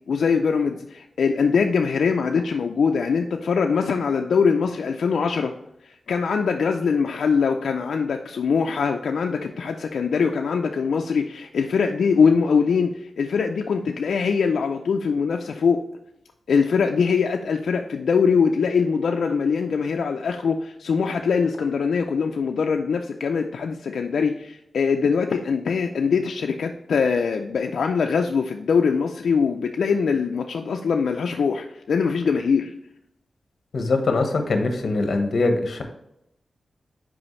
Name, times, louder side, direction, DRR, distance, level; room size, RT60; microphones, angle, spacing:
voice 1, 0.1-5.5 5.8-15.8 16.5-32.7, left 5 dB, 90° left, 3 dB, 0.4 m, -22 dB
voice 2, 33.7-35.8, left 3 dB, 70° left, 5 dB, 1.0 m, -22 dB
6.1 x 4.9 x 3.1 m, 0.81 s
wide cardioid pair, 75°, 0 cm